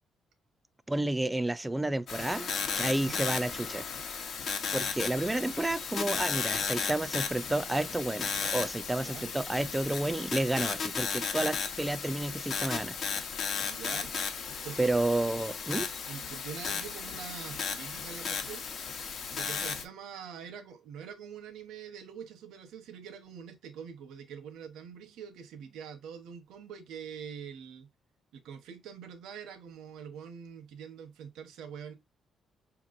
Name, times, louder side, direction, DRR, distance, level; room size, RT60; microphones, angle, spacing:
voice 1, 0.9-2.5 2.8-3.8 4.7-12.9 14.8-15.9, right 1 dB, 10° right, 0.4 m, -31 dB
sound 1, 2.1-19.8, left 6 dB, 55° left, 0.8 m, -35 dB
voice 2, 8.9-9.3 13.7-14.1 14.6-14.9 16.1-18.7 19.3-27.9 28.3-31.9, right 7 dB, 85° right, 0.9 m, -44 dB
5.6 x 3.0 x 2.5 m
cardioid pair, 125°, 0 cm